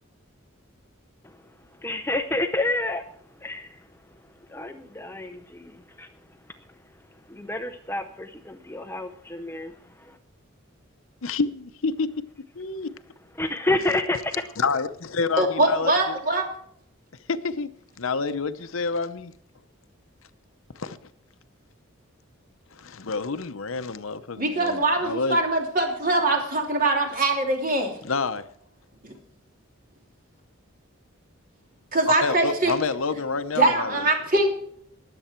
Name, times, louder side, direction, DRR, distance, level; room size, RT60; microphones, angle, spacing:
voice 1, 1.8-3.0 3.4-3.8 4.5-6.1 7.3-9.7 10.1-10.2 13.4-14.3, left 2 dB, 10° left, 0.6 m, -29 dB
voice 2, 11.2-12.1 12.6-12.9 14.6-16.2 17.3-17.7 18.0-19.3 20.7-21.0 22.7-25.4 28.0-28.5 32.1-34.1, left 4 dB, 75° left, 0.8 m, -28 dB
voice 3, 15.4-16.5 24.4-27.9 29.0-29.1 31.9-32.7 33.5-34.5, right 2 dB, 40° right, 3.0 m, -22 dB
21.0 x 7.9 x 4.5 m
head